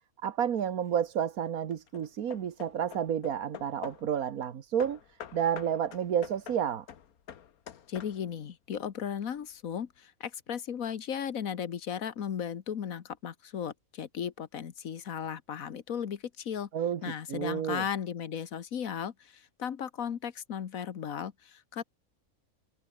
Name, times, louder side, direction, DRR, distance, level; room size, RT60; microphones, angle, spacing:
voice 1, 0.2-5.0 5.3-6.8 16.7-17.8, right 9 dB, 90° right, 1.6 m, -30 dB
Hammer / Wood, 0.6-1.1 1.7-4.2 4.8-8.5, left 9 dB, 90° left, 1.6 m, -47 dB
voice 2, 7.9-16.7 17.0-21.8, left 8 dB, 70° left, 1.6 m, -36 dB
omnidirectional pair, 1.5 m